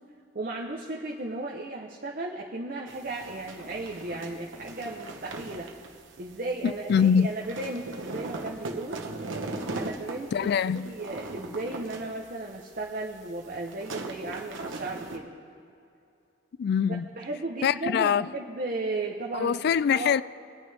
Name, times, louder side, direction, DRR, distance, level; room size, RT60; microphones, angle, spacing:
voice 1, 0.3-5.7 6.2-9.0 9.7-15.3 17.2-19.6 19.9-20.1, right 2 dB, 45° right, 0.9 m, -35 dB
sound 1, 2.9-15.2, right 2 dB, 80° right, 1.2 m, -39 dB
voice 2, 6.6-7.3 10.3-10.9 16.6-17.1 17.6-18.3 19.3-20.2, left 7 dB, 55° left, 0.3 m, -24 dB
23.0 x 9.2 x 3.5 m
head